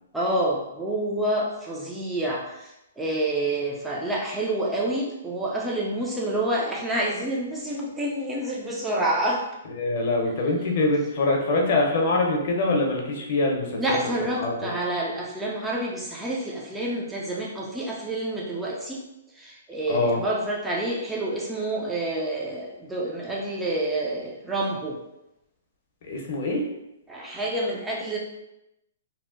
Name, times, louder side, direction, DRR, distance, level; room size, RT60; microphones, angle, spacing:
voice 1, 0.1-9.4 13.8-19.0 19.4-25.0 27.1-28.2, right 1 dB, 5° right, -4 dB, 0.4 m, -28 dB
voice 2, 9.8-14.0 14.4-14.7 19.9-20.2 26.1-26.7, left 2 dB, 50° left, 1 dB, 0.7 m, -24 dB
2.7 x 2.0 x 3.7 m, 0.89 s
hypercardioid pair, 150°, 0 cm